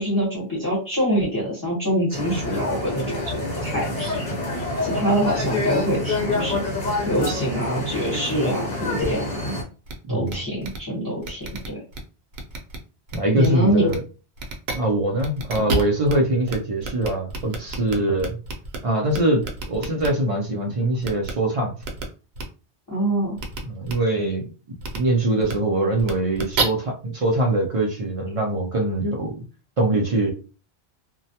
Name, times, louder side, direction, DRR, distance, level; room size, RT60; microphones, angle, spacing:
voice 1, 0.0-4.3 4.8-6.6 7.0-9.6 10.1-11.8 13.3-13.9 22.9-23.4, equal, 20° left, -6 dB, 0.9 m, -25 dB
sound 1, 2.1-9.6, left 2 dB, 50° left, 1.0 m, -27 dB
sound 2, 9.9-10.0 10.3-10.4 10.6-10.8 11.2-12.0 12.3-12.8 13.1-13.5 13.9-14.0 14.4-14.8 15.2-16.1 16.5-16.6 16.8-18.8 19.1-20.1 21.0-21.3 21.8-22.0 22.3-22.4 23.4-23.6 23.8-23.9 24.8-25.0 25.4-25.5 26.0-26.6, right 4 dB, 80° right, 0.9 m, -29 dB
voice 2, 13.1-14.0 14.7-18.4 18.8-21.7 23.7-24.5 24.9-29.4 29.8-30.3, right 1 dB, 50° right, 0 dB, 0.4 m, -23 dB
2.2 x 2.1 x 2.7 m, 0.35 s
omnidirectional pair, 1.1 m